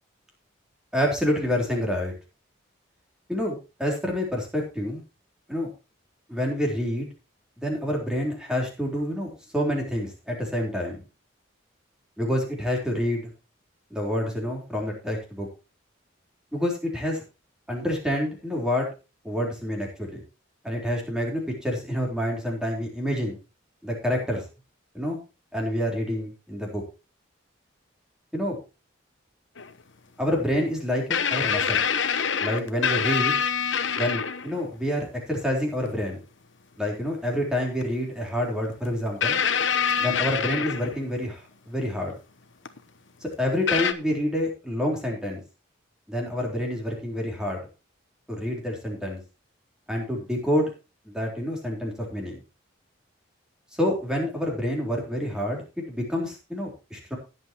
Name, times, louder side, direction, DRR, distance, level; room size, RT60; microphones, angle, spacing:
voice 1, 0.9-2.1 3.3-5.0 5.5-5.7 6.3-7.1 7.6-11.0 12.2-13.2 13.9-15.5 16.5-17.2 17.7-18.9 19.2-20.2 20.6-23.4 23.8-24.4 24.9-25.2 25.5-26.8 28.3-28.6 30.2-31.8 32.4-33.4 34.0-36.2 36.8-39.4 40.0-42.1 43.2-45.4 46.1-47.6 48.3-49.2 49.9-50.7 51.1-52.4 53.8-57.2, equal, 5° right, -1 dB, 3.9 m, -28 dB
sound 1, 29.6-29.7 31.1-34.6 35.9-36.0 37.8-37.9 39.2-41.3 42.7-42.8 43.7-43.9, left 7 dB, 65° left, 1.0 m, -25 dB
19.0 x 8.0 x 3.0 m, 0.30 s
head